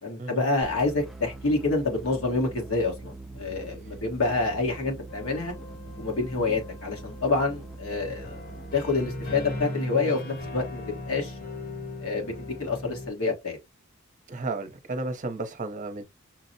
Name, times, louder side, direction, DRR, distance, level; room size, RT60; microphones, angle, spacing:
voice 1, 0.0-5.5 6.0-8.4 8.7-11.3 12.0-13.6, left 3 dB, 75° left, 1.3 m, -27 dB
sound 1, 0.6-9.7, right 3 dB, ahead, 0.4 m, -43 dB
sound 2, 5.1-13.1, left 1 dB, 45° left, 1.1 m, -39 dB
voice 2, 14.3-16.0, right 2 dB, 35° right, 0.7 m, -33 dB
5.8 x 2.0 x 2.7 m
head